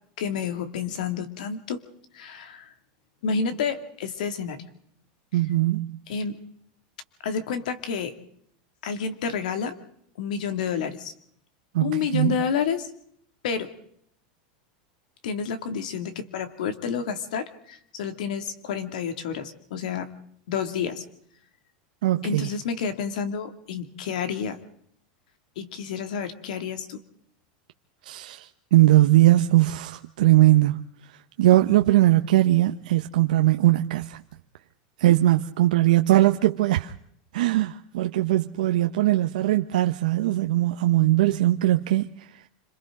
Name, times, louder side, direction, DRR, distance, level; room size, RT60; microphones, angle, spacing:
voice 1, 0.2-1.8 2.1-2.7 3.2-4.6 6.1-6.4 7.2-8.1 8.8-9.8 10.2-11.1 11.8-12.9 13.4-13.7 15.2-20.1 20.5-21.0 22.2-24.6 25.6-27.0, left 6 dB, 80° left, 2.5 m, -29 dB
voice 2, 5.3-6.0 11.7-12.3 22.0-22.5 28.0-34.2 35.0-36.9 37.3-42.4, right 15 dB, 90° right, 0.9 m, -20 dB
27.5 x 26.5 x 3.8 m
supercardioid pair, 170°, 4 cm